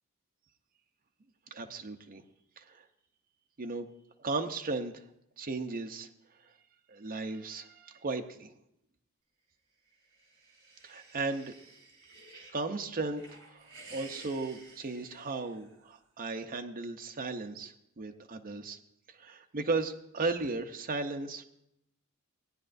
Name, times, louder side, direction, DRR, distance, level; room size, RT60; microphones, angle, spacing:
voice 1, 1.5-2.2 2.6-2.8 3.6-3.9 4.2-5.1 5.4-6.1 6.9-8.5 10.8-11.5 12.5-18.8 19.1-21.4, right 3 dB, 40° right, 5 dB, 0.7 m, -36 dB
sound 1, 9.9-12.6 13.0-15.9, right 3 dB, 70° right, 3.4 m, -53 dB
18.0 x 9.9 x 2.6 m, 0.80 s
head